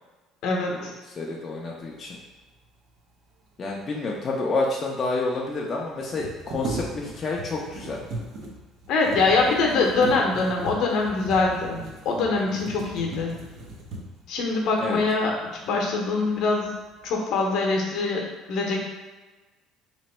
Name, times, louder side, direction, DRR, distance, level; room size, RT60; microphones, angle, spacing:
voice 1, 1.2-2.2 3.6-8.0 14.8-15.0, left 3 dB, 30° left, -3 dB, 0.5 m, -29 dB
sound 1, 4.5-4.6 4.8-4.9 6.0-14.3 15.0-15.1 15.6-16.2 16.6-17.1, right 2 dB, 60° right, 0.8 m, -38 dB
voice 2, 8.9-11.8 12.0-13.3 14.3-15.3 15.6-16.7 17.0-18.2 18.5-18.8, left 3 dB, 65° left, 0 dB, 0.8 m, -23 dB
3.0 x 2.5 x 4.3 m, 1.2 s
cardioid pair, 125°, 0 cm